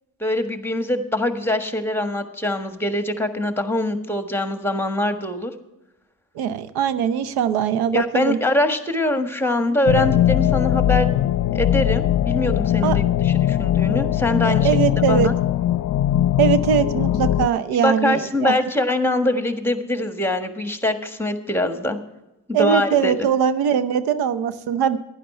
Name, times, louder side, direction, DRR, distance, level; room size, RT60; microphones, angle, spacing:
voice 1, 0.2-5.5 7.9-11.1 11.5-14.7 15.1-15.3 17.8-22.0 22.5-23.1, left 1 dB, 5° left, 7 dB, 1.4 m, -23 dB
voice 2, 6.3-8.4 12.8-13.0 14.4-15.3 16.4-18.6 22.5-25.0, right 8 dB, 85° right, 13 dB, 0.7 m, -21 dB
sound 1, 9.9-17.5, left 12 dB, 55° left, 0.6 m, -20 dB
11.5 x 10.0 x 4.3 m, 0.98 s
supercardioid pair, 70°, 37 cm